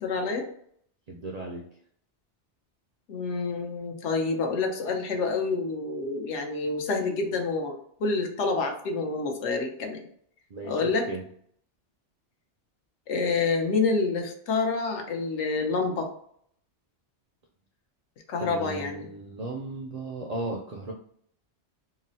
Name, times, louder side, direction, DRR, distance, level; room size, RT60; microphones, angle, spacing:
voice 1, 0.0-0.4 3.1-10.0 10.6-11.1 13.1-16.1 18.3-19.1, left 4 dB, 80° left, 3 dB, 1.0 m, -28 dB
voice 2, 1.1-1.7 10.5-11.2 18.4-20.9, right 2 dB, 60° right, 0 dB, 0.4 m, -36 dB
3.8 x 2.0 x 2.7 m, 0.64 s
omnidirectional pair, 1.2 m